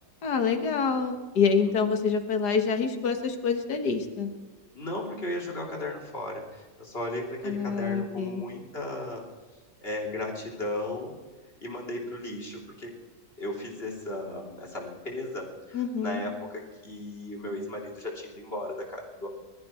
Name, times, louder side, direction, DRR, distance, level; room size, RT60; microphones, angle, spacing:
voice 1, 0.2-4.3 7.4-8.4 15.7-16.2, left 5 dB, 75° left, 6 dB, 2.0 m, -26 dB
voice 2, 4.7-9.2 9.8-11.1 11.6-12.9 13.4-19.3, left 1 dB, 35° left, -2 dB, 3.4 m, -35 dB
21.0 x 13.5 x 4.4 m, 1.3 s
omnidirectional pair, 1.8 m